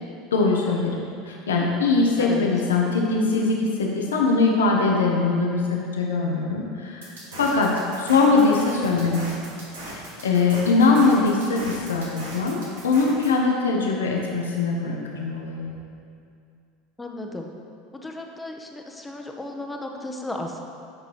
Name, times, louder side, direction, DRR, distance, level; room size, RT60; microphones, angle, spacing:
voice 1, 0.3-0.9 1.2-7.1 7.4-7.7 8.0-9.3 9.8-12.6 12.8-15.7, left 3 dB, 85° left, -1 dB, 0.8 m, -21 dB
sound 1, 7.0-13.3, right 1 dB, 85° right, 1.6 m, -39 dB
voice 2, 17.0-17.5 17.9-20.6, left 2 dB, 15° left, 2 dB, 0.8 m, -34 dB
9.1 x 5.3 x 3.0 m, 2.4 s
hypercardioid pair, 85°, 0 cm